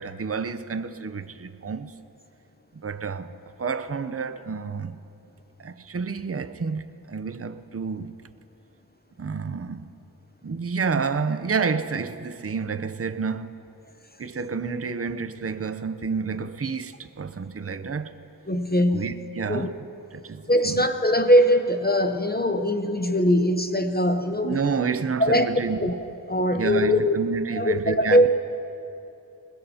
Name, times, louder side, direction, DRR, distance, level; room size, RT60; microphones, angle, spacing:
voice 1, 0.0-1.9 2.7-5.0 5.6-8.1 9.2-9.9 10.4-13.5 14.2-18.1 18.9-19.7 20.1-20.8 24.4-25.8 26.5-28.3, right 5 dB, 35° right, 0.6 m, -29 dB
voice 2, 18.5-19.1 19.5-19.7 20.5-24.6 25.2-25.5 25.8-26.0 26.3-27.2 27.5-28.3, equal, 25° left, 0.7 m, -21 dB
21.5 x 21.0 x 2.8 m
wide cardioid pair, 50°, 39 cm